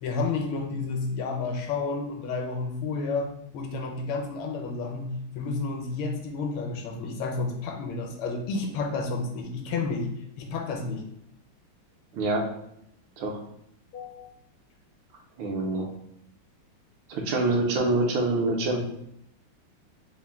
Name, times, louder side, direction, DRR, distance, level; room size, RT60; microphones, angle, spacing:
voice 1, 0.0-10.1 10.4-11.0 13.9-14.3, left 3 dB, 80° left, 3 dB, 1.4 m, -31 dB
voice 2, 12.1-12.5 13.2-13.4 15.4-15.9 17.1-18.8, right 2 dB, 75° right, 2 dB, 1.3 m, -25 dB
3.6 x 2.4 x 3.4 m, 0.76 s
omnidirectional pair, 2.3 m